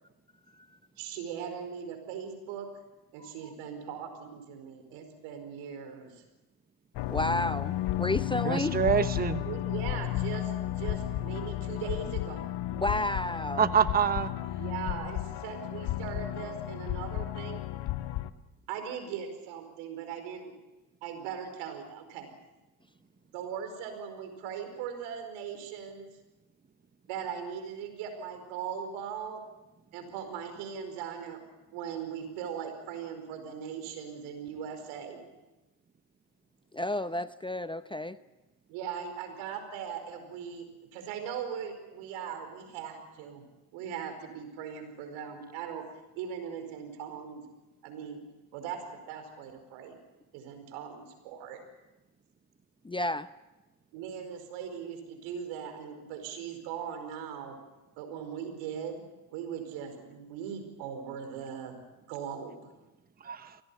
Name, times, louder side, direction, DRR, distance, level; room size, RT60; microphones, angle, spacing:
voice 1, 1.0-2.7 3.1-6.2 9.4-12.5 14.6-17.6 18.7-20.5 21.0-22.3 23.3-26.1 27.1-29.4 29.9-31.4 31.7-35.2 38.7-40.6 40.9-43.4 43.7-45.8 46.1-47.4 47.8-48.2 48.5-50.0 50.3-51.6 53.9-57.5 58.0-59.0 59.3-61.8 62.1-62.7, right 7 dB, 80° right, 7 dB, 5.0 m, -39 dB
sound 1, 6.9-18.3, left 14 dB, 65° left, 1.2 m, -33 dB
voice 2, 7.1-8.7 12.7-13.7 36.7-38.2 52.8-53.3, left 1 dB, 10° left, 13 dB, 0.7 m, -31 dB
voice 3, 8.4-9.4 13.6-14.3 63.2-63.6, right 7 dB, 20° right, 12 dB, 1.0 m, -26 dB
24.0 x 18.0 x 8.6 m, 1.0 s
supercardioid pair, 70°, 46 cm